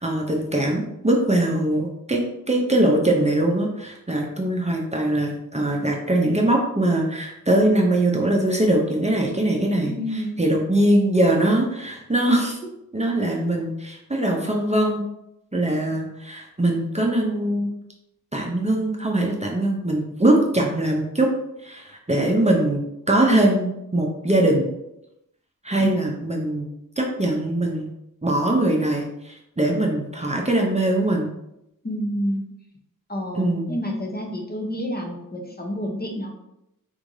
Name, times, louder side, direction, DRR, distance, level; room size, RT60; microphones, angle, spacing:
voice 1, 0.0-9.9 10.4-12.6 12.9-15.0 15.5-17.7 18.3-21.3 21.6-22.8 23.1-24.7 25.6-26.7 27.0-27.9 28.2-31.3 33.3-33.8, right 1 dB, 20° right, -1 dB, 0.6 m, -22 dB
voice 2, 9.8-10.5 22.1-22.2 25.8-25.9 31.8-32.4 33.1-36.3, equal, 30° left, 1 dB, 0.7 m, -29 dB
3.6 x 3.2 x 2.6 m, 0.85 s
wide cardioid pair, 50°, 34 cm